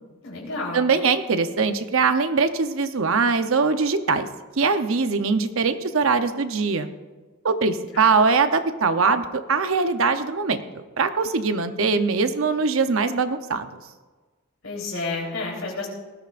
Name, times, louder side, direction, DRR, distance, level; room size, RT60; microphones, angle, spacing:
voice 1, 0.2-0.9 7.9-8.1 14.6-15.9, left 3 dB, 70° left, -2 dB, 3.8 m, -30 dB
voice 2, 0.7-4.3 4.6-6.9 7.4-13.8, right 4 dB, 65° right, 9 dB, 0.8 m, -22 dB
19.0 x 12.5 x 2.5 m, 1.3 s
head